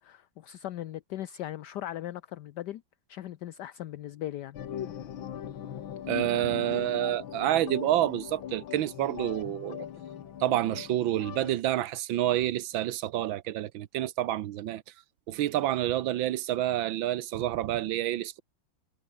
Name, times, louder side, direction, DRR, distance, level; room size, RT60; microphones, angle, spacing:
voice 1, 0.0-2.8 3.1-4.6, left 13 dB, 70° left, 1.3 m, -38 dB
sound 1, 4.5-11.5, left 9 dB, 85° left, 2.1 m, -39 dB
voice 2, 6.1-9.9 10.4-14.8 15.3-18.4, right 13 dB, 85° right, 1.6 m, -28 dB
omnidirectional pair, 2.1 m